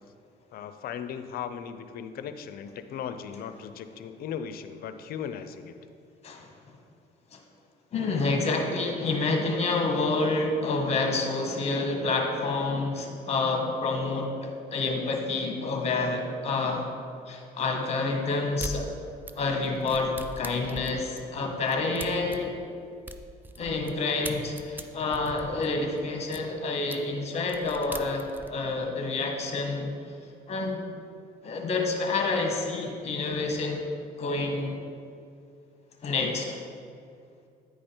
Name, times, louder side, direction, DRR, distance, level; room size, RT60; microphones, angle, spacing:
voice 1, 0.5-5.7, left 8 dB, 60° left, 10 dB, 0.5 m, -37 dB
voice 2, 7.9-16.8 17.3-18.9 19.3-22.5 23.6-29.9 30.5-30.8 31.4-33.8 34.2-34.8 36.0-36.6, left 3 dB, 40° left, 2 dB, 1.3 m, -28 dB
sound 1, 18.6-18.8 19.3-23.9 24.2-26.4 26.9-27.0 27.4-28.5, right 1 dB, 10° right, 0.4 m, -40 dB
9.4 x 5.0 x 4.4 m, 2.4 s
cardioid pair, 110°, 17 cm